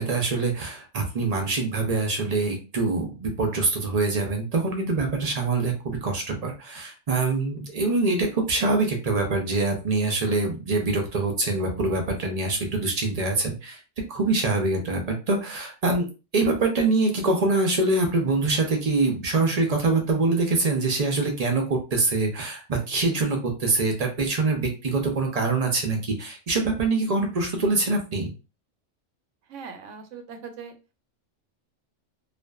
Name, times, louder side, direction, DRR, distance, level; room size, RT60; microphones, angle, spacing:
voice 1, 0.0-13.8 14.1-16.1 16.3-28.3, right 3 dB, 50° right, 2 dB, 0.5 m, -24 dB
voice 2, 29.5-30.7, right 6 dB, 80° right, 6 dB, 0.9 m, -40 dB
2.5 x 2.4 x 2.2 m, 0.31 s
omnidirectional pair, 1.3 m